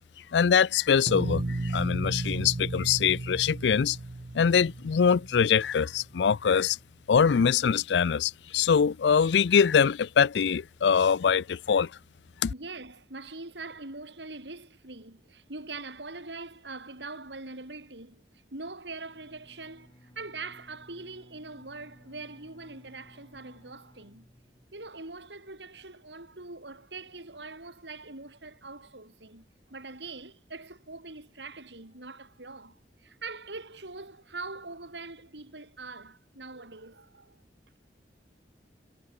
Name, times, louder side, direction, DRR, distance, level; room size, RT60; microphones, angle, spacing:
voice 1, 0.3-4.0 4.3-6.8 7.1-11.9 12.4-12.5, left 6 dB, 80° left, 0.4 m, -23 dB
sound 1, 1.1-6.0, right 2 dB, 45° right, 0.7 m, -34 dB
voice 2, 12.5-24.3 24.7-37.4, right 3 dB, 85° right, 4.6 m, -43 dB
Bowed string instrument, 19.0-25.0, equal, 25° left, 7.1 m, -57 dB
head